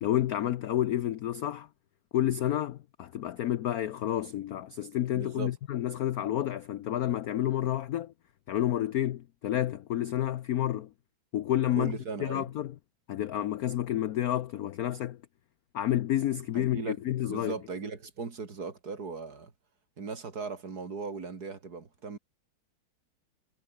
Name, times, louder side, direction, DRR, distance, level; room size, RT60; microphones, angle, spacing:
voice 1, 0.0-1.7 2.1-8.1 8.5-10.9 11.3-12.8 13.1-15.2 15.7-17.6, left 12 dB, 70° left, 0.9 m, -30 dB
voice 2, 5.1-5.5 11.8-12.5 16.5-17.0 17.3-19.5 20.0-22.2, right 4 dB, 50° right, 3.1 m, -38 dB
omnidirectional pair, 2.2 m